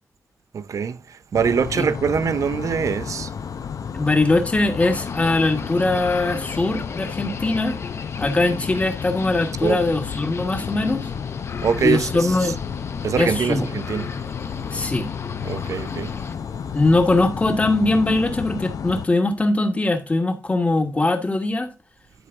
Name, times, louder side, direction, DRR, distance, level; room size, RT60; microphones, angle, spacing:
voice 1, 0.5-1.0 1.3-3.3 9.6-9.8 11.6-12.3 13.0-14.1 15.4-16.1, right 6 dB, 65° right, 0.5 m, -23 dB
sound 1, 1.3-19.1, left 7 dB, 75° left, 0.6 m, -32 dB
voice 2, 3.9-7.8 8.2-11.0 11.8-12.6 13.2-13.7 14.7-15.1 16.7-21.7, left 2 dB, 20° left, 1.3 m, -21 dB
sound 2, 4.8-16.4, left 4 dB, 45° left, 0.8 m, -37 dB
10.5 x 4.9 x 3.5 m
wide cardioid pair, 170°, 6 cm